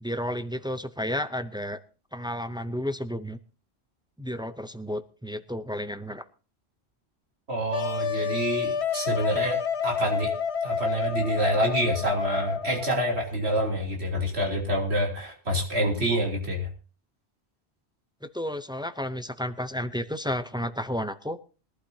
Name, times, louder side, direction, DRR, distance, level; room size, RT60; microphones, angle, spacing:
voice 1, 0.0-1.8 2.1-3.4 4.2-6.2 18.3-21.4, equal, 5° right, 11 dB, 0.4 m, -32 dB
voice 2, 7.5-10.3 10.6-16.7, right 1 dB, 80° right, 0 dB, 3.6 m, -27 dB
Wind instrument woodwind instrument, 7.7-13.2, left 7 dB, 90° left, 1.2 m, -29 dB
22.0 x 11.5 x 2.8 m, 0.34 s
omnidirectional pair, 1.1 m